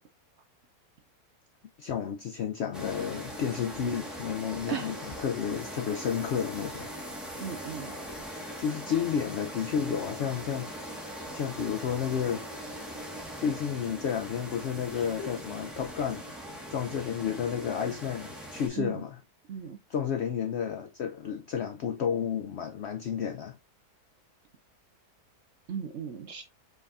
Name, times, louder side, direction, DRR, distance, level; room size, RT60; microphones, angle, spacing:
voice 1, 1.8-4.9 5.2-6.9 8.6-10.7 11.3-12.5 13.4-16.3 16.7-19.2 19.9-23.6, left 7 dB, 80° left, 0.6 m, -31 dB
sound 1, 2.7-18.7, equal, ahead, 1.2 m, -41 dB
voice 2, 4.7-5.1 7.4-8.1 18.8-19.0 19.5-19.8 25.7-26.4, right 8 dB, 60° right, 0.7 m, -37 dB
5.3 x 3.4 x 2.4 m
omnidirectional pair, 1.7 m